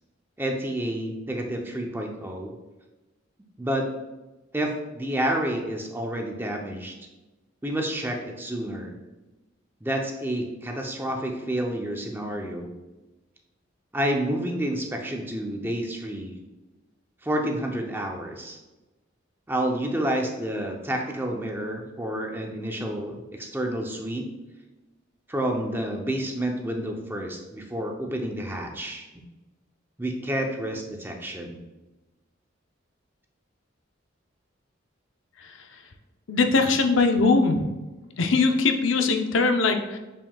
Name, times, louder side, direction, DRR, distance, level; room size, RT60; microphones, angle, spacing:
voice 1, 0.4-2.5 3.6-3.9 4.5-6.9 7.6-9.0 9.8-12.7 13.9-16.3 17.2-18.6 19.5-24.3 25.3-29.1 30.0-31.6, right 1 dB, 10° right, 2 dB, 0.6 m, -29 dB
voice 2, 36.3-37.7 38.2-40.0, left 3 dB, 70° left, 5 dB, 0.6 m, -21 dB
6.8 x 6.0 x 2.3 m, 1.1 s
head